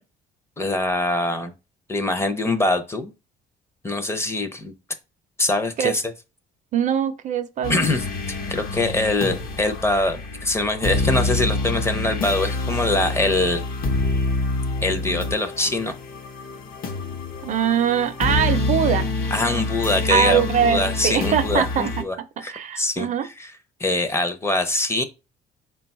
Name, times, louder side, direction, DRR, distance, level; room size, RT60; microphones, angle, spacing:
voice 1, 0.6-1.5 1.9-3.1 3.8-4.7 5.4-6.0 7.7-13.6 14.8-15.9 19.3-23.5 23.8-25.0, left 2 dB, 15° left, 0.5 m, -23 dB
voice 2, 6.7-7.9 17.4-19.2 20.1-22.0 22.5-23.3, right 8 dB, 50° right, 0.4 m, -22 dB
sound 1, 7.6-22.0, left 3 dB, 60° left, 0.8 m, -27 dB
3.8 x 2.3 x 4.1 m
cardioid pair, 110°, 17 cm